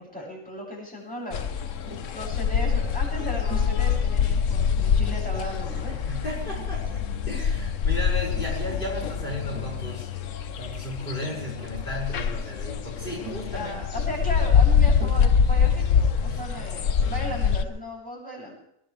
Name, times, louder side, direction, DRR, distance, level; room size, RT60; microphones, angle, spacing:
voice 1, 0.0-1.8 2.1-6.0 13.5-18.5, equal, 5° left, -5 dB, 7.9 m, -36 dB
sound 1, 1.3-17.6, left 7 dB, 65° left, 1.2 m, -25 dB
Tap, 1.8-2.2 3.5-3.8 4.9-5.4 6.5-7.2 8.2-8.6 9.3-9.8 11.0-11.1 11.3-11.9 13.2-13.6 14.9-15.4 17.0-17.3, right 3 dB, 70° right, 4.8 m, -43 dB
voice 2, 6.0-13.8 16.2-16.4, left 1 dB, 35° left, -6 dB, 6.8 m, -35 dB
22.5 x 18.0 x 3.5 m, 0.75 s
omnidirectional pair, 1.5 m